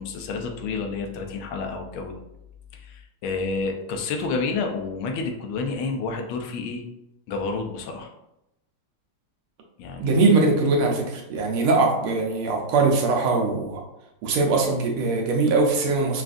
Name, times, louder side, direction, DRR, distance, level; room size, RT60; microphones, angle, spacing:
voice 1, 0.0-2.1 2.7-6.8 7.3-8.1 9.8-10.2, left 4 dB, 75° left, 3 dB, 1.4 m, -29 dB
voice 2, 10.0-13.8 14.2-16.2, right 3 dB, 85° right, 0 dB, 1.7 m, -21 dB
5.9 x 2.4 x 2.5 m, 0.87 s
omnidirectional pair, 2.3 m